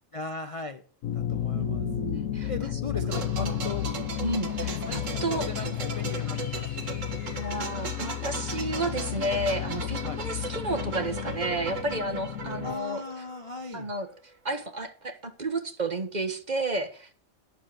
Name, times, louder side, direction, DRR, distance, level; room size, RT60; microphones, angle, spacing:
voice 1, 0.1-0.8 1.1-1.9 2.4-3.9 4.9-6.6 9.6-9.7 10.0-10.2 12.6-13.9, left 3 dB, 35° left, 7 dB, 0.6 m, -38 dB
sound 1, 1.0-12.7, left 11 dB, 80° left, 1.1 m, -33 dB
voice 2, 1.5-3.6 4.2-5.8 7.3-13.0 13.7-14.1 14.4-17.1, right 2 dB, 35° right, 8 dB, 1.2 m, -32 dB
sound 2, 3.1-13.7 14.0-14.2, right 4 dB, 70° right, 1.8 m, -38 dB
sound 3, 4.4-11.8, left 6 dB, 60° left, 1.1 m, -45 dB
9.6 x 6.7 x 7.6 m, 0.42 s
omnidirectional pair, 1.4 m